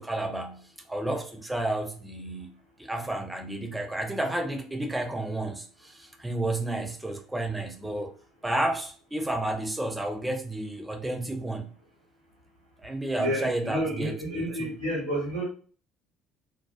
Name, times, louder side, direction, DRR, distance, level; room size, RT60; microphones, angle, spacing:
voice 1, 0.0-2.5 2.8-8.1 8.4-11.7 12.8-14.7, right 1 dB, 10° right, 0.5 m, -31 dB
voice 2, 13.2-15.4, equal, 80° right, 0.9 m, -30 dB
2.4 x 2.1 x 2.4 m
figure-of-eight pair, 55°, 0 cm